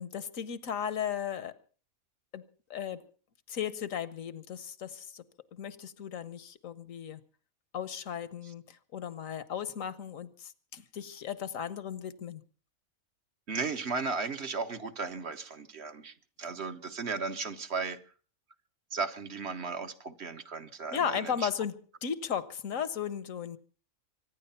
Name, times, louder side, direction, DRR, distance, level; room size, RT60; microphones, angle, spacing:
voice 1, 0.0-1.6 2.3-2.4 2.7-3.1 3.5-5.2 5.5-7.2 7.7-12.4 20.9-21.8 22.0-23.6, left 8 dB, 70° left, 1.3 m, -36 dB
voice 2, 13.5-18.0 18.9-21.5, right 4 dB, 50° right, 1.3 m, -35 dB
25.0 x 9.9 x 5.6 m
omnidirectional pair, 1.5 m